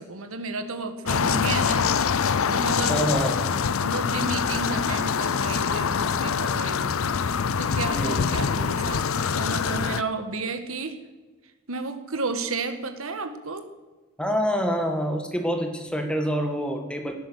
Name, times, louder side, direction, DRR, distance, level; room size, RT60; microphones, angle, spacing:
voice 1, 0.0-1.9 2.5-3.0 3.8-7.0 7.6-11.0 11.7-13.7, right 3 dB, 75° right, 8 dB, 1.6 m, -32 dB
sound 1, 1.1-10.0, left 6 dB, 75° left, 0.5 m, -24 dB
voice 2, 2.9-3.5 7.9-8.3 14.2-17.1, equal, 5° left, 4 dB, 1.8 m, -26 dB
18.0 x 10.0 x 6.5 m, 1.3 s
head